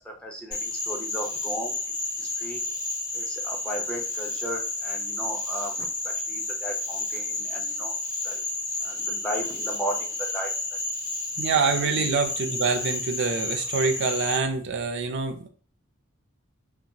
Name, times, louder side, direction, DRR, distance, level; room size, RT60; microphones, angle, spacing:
voice 1, 0.0-1.8 2.2-2.6 3.1-7.9 8.2-8.4 8.8-10.8 11.8-12.1, right 1 dB, 5° left, 1 dB, 0.5 m, -36 dB
Frog, 0.5-14.4, left 2 dB, 55° left, 1.3 m, -31 dB
voice 2, 11.4-15.5, right 5 dB, 60° right, 7 dB, 0.4 m, -26 dB
2.8 x 2.3 x 2.6 m, 0.41 s
head